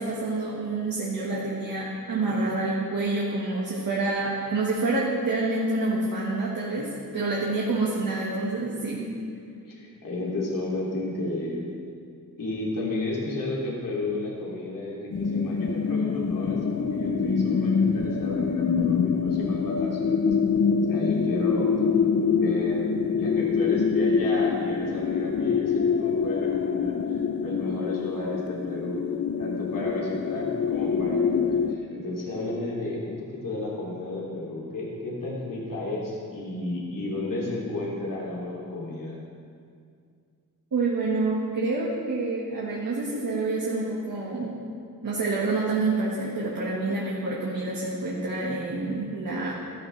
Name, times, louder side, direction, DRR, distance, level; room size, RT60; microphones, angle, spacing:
voice 1, 0.0-9.1 40.7-44.6 45.0-49.5, right 3 dB, 80° right, -5 dB, 1.7 m, -27 dB
voice 2, 9.6-11.8 12.4-20.4 20.9-21.7 22.3-29.0 29.4-39.2, left 2 dB, 70° left, -5 dB, 2.8 m, -32 dB
sound 1, 15.1-31.8, left 6 dB, 45° left, 0.6 m, -25 dB
14.0 x 12.5 x 3.3 m, 2.3 s
wide cardioid pair, 90°, 34 cm